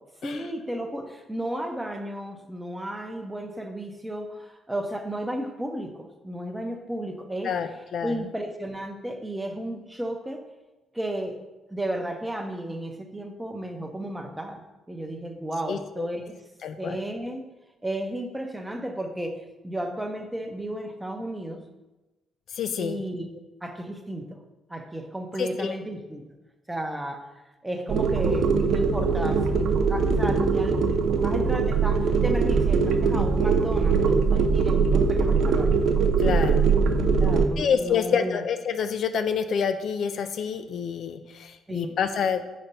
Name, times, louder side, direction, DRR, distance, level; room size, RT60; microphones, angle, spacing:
voice 1, 0.2-7.5 8.0-10.4 10.9-11.4 11.7-14.6 14.9-16.3 16.8-17.4 17.8-19.4 19.6-21.6 22.8-23.3 23.6-24.4 24.7-26.2 26.7-27.3 27.6-35.8 37.2-38.4 41.7-42.0, right 1 dB, 10° right, 5 dB, 0.7 m, -33 dB
voice 2, 7.4-8.1 15.7-16.1 16.6-17.0 22.5-23.0 25.4-25.8 36.2-36.7 37.6-42.4, left 7 dB, 60° left, 9 dB, 0.4 m, -28 dB
sound 1, 27.9-37.5, right 5 dB, 65° right, 0.5 m, -22 dB
4.4 x 4.2 x 5.2 m, 1.1 s
cardioid pair, 110°, 0 cm